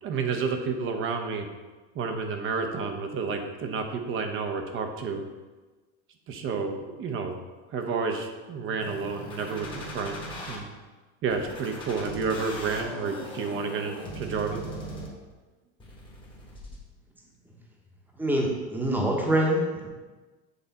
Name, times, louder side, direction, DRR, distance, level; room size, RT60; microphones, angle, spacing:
voice 1, 0.0-1.5 1.9-5.2 6.3-7.4 7.7-10.7 11.2-14.6, right 5 dB, 40° right, 5 dB, 0.8 m, -30 dB
sound 1, 8.8-10.6 11.3-15.3 15.8-16.8, left 1 dB, 15° left, 1.2 m, -39 dB
voice 2, 18.2-19.9, right 1 dB, 5° right, -1 dB, 1.0 m, -25 dB
8.1 x 3.2 x 4.1 m, 1.3 s
supercardioid pair, 130°, 33 cm